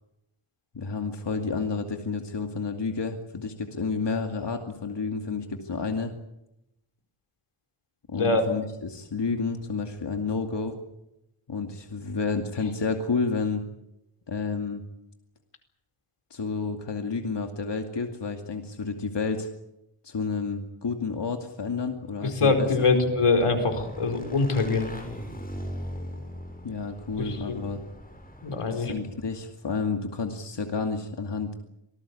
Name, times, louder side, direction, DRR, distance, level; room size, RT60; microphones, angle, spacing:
voice 1, 0.7-6.1 8.1-10.8 11.5-13.6 14.3-14.8 16.3-19.5 20.0-23.1 26.6-27.8 28.7-31.5, left 4 dB, 55° left, 4 dB, 2.5 m, -30 dB
voice 2, 8.1-8.5 22.2-24.9 27.2-27.6 28.4-28.9, left 3 dB, 85° left, 6 dB, 4.7 m, -24 dB
Motorcycle / Engine, 22.0-29.3, equal, 15° left, 7.3 m, -41 dB
26.5 x 19.0 x 8.6 m, 0.86 s
wide cardioid pair, 95°, 50 cm